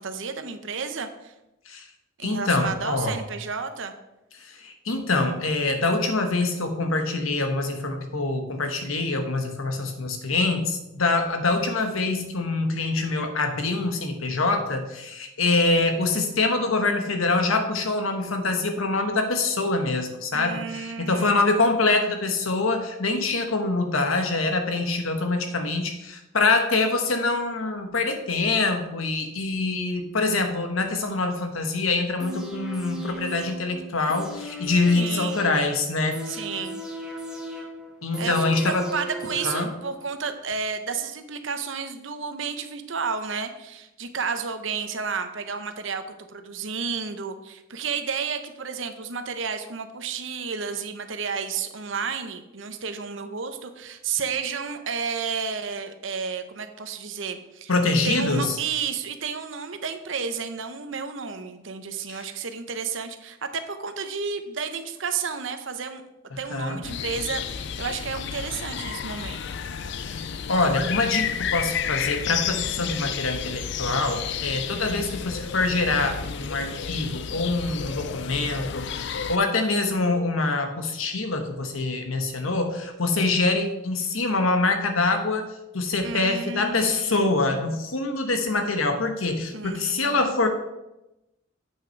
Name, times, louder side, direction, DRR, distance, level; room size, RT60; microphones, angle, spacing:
voice 1, 0.0-1.3 2.2-3.9 20.3-21.8 34.9-35.5 36.3-36.8 38.2-38.4 38.6-46.0 46.3-57.7 58.0-66.0 66.4-69.4 86.0-87.6 89.5-90.3, right 5 dB, 65° right, 8 dB, 0.8 m, -32 dB
voice 2, 2.2-3.2 4.4-36.4 38.0-38.9 39.4-39.7 57.7-58.6 62.1-62.2 66.3-66.8 70.0-70.2 70.5-85.5 85.7-90.5, left 3 dB, 85° left, 5 dB, 1.2 m, -25 dB
sound 1, 32.2-40.2 40.5-40.6, right 1 dB, 5° right, 1.1 m, -37 dB
sound 2, 66.8-79.4, left 8 dB, 55° left, 0.4 m, -31 dB
8.3 x 6.0 x 4.5 m, 0.92 s
head